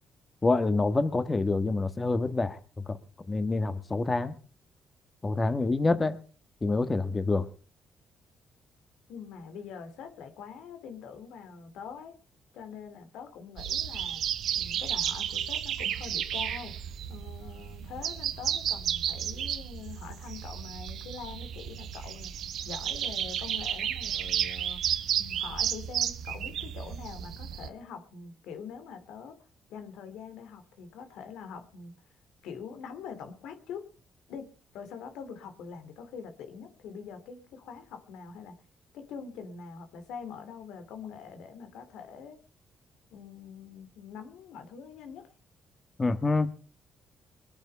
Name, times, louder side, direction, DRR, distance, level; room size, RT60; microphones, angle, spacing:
voice 1, 0.4-2.6 2.9-3.0 3.3-4.3 5.2-6.2 6.6-7.5 46.0-46.5, left 3 dB, 25° left, 10 dB, 1.4 m, -26 dB
voice 2, 9.1-12.1 12.5-14.2 14.5-22.3 22.6-29.4 29.7-31.9 32.4-33.9 34.3-38.6 38.9-42.4 43.1-45.3, left 6 dB, 90° left, 8 dB, 2.7 m, -44 dB
sound 1, 13.6-27.7, right 9 dB, 75° right, 1.1 m, -32 dB
22.0 x 9.0 x 5.6 m, 0.38 s
cardioid pair, 90°, 0 cm